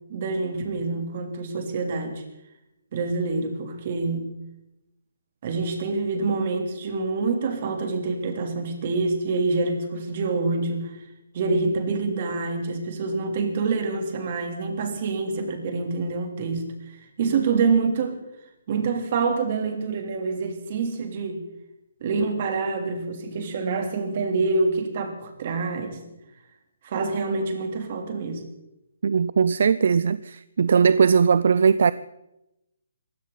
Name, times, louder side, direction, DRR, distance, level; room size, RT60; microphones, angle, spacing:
voice 1, 0.1-2.2 2.9-4.3 5.4-11.0 11.3-18.2 18.7-21.4 22.0-26.0 26.8-28.4, right 4 dB, 45° right, 3.2 m, -26 dB
voice 2, 29.0-31.9, right 6 dB, 65° right, 0.5 m, -19 dB
20.5 x 16.5 x 4.1 m
hypercardioid pair, 160°, 0 cm